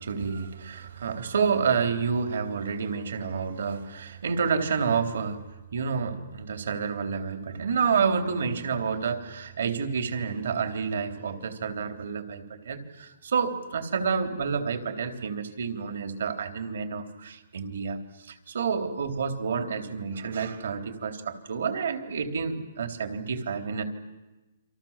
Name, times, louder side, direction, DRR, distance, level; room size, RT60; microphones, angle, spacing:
voice 1, 0.0-5.4 5.7-23.8, right 6 dB, 80° right, 7 dB, 3.6 m, -29 dB
29.0 x 25.5 x 7.5 m, 1.1 s
hypercardioid pair, 165°, 0 cm